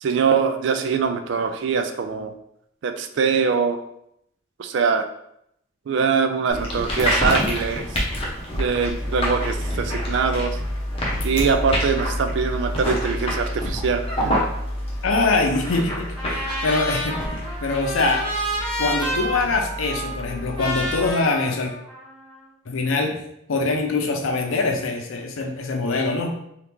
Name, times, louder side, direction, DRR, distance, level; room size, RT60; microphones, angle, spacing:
voice 1, 0.0-2.3 2.8-3.8 4.6-5.1 5.9-8.0 8.6-10.6 11.2-14.4, right 5 dB, 60° right, 7 dB, 0.3 m, -23 dB
sound 1, 6.5-21.1, equal, 30° left, 0.7 m, -27 dB
voice 2, 15.0-18.3 18.8-21.7 22.7-23.2 23.5-26.3, left 3 dB, 80° left, 3 dB, 0.6 m, -23 dB
Trumpet, 16.2-22.4, equal, 25° right, 1.2 m, -30 dB
2.9 x 2.4 x 3.4 m, 0.76 s
head